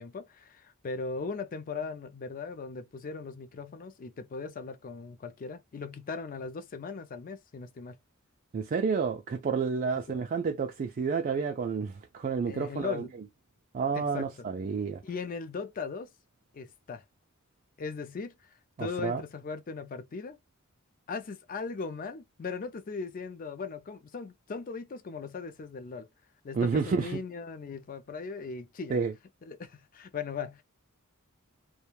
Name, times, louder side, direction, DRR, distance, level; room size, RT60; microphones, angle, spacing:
voice 1, 0.0-7.9 12.5-13.1 13.9-14.5 15.0-16.1 16.5-17.0 17.8-20.4 21.1-26.1 26.4-29.0 29.5-30.6, left 4 dB, 40° left, 0.4 m, -38 dB
voice 2, 8.5-13.0 13.7-15.0 18.8-19.2 26.5-27.2 28.9-29.1, right 5 dB, 40° right, 0.3 m, -30 dB
2.3 x 2.2 x 3.0 m
head